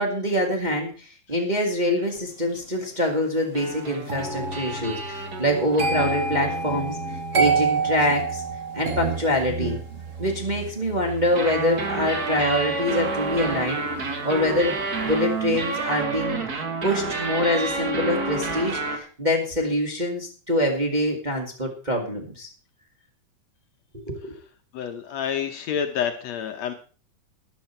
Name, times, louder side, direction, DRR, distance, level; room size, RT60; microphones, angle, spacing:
voice 1, 0.0-7.0 7.3-8.4 8.7-9.8 10.2-14.7 15.0-16.4 16.8-22.5 23.9-24.4, left 1 dB, 20° right, 0 dB, 1.6 m, -25 dB
sound 1, 3.5-9.0 11.1-19.0, right 3 dB, 40° right, 1.5 m, -30 dB
sound 2, 4.1-15.0 15.3-15.7, right 4 dB, 70° right, 0.7 m, -30 dB
voice 2, 24.7-26.7, left 8 dB, 70° left, 7 dB, 1.9 m, -28 dB
13.5 x 10.5 x 4.4 m, 0.38 s
omnidirectional pair, 3.6 m